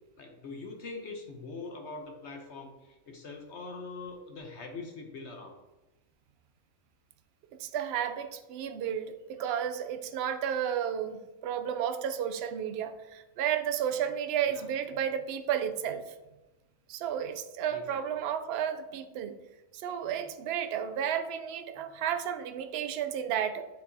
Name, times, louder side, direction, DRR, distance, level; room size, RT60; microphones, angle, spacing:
voice 1, 0.2-5.6 14.5-14.6 17.7-18.0, left 3 dB, 55° left, 3 dB, 1.0 m, -43 dB
voice 2, 7.6-16.1 16.9-19.4 19.7-23.7, right 9 dB, 65° right, 9 dB, 0.6 m, -32 dB
8.2 x 4.7 x 2.7 m, 1.0 s
omnidirectional pair, 1.5 m